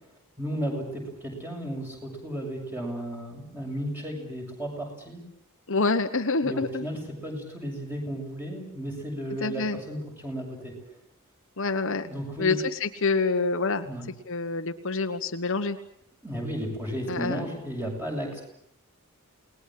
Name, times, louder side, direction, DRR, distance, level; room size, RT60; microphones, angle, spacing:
voice 1, 0.4-5.2 6.4-10.7 12.0-12.6 13.8-14.1 16.2-18.4, equal, 10° right, 1 dB, 7.4 m, -34 dB
voice 2, 5.7-6.9 9.4-9.8 11.6-12.1 12.4-13.9 14.3-15.8 17.1-17.4, left 3 dB, 60° left, 7 dB, 1.3 m, -27 dB
29.0 x 20.0 x 7.7 m, 0.72 s
head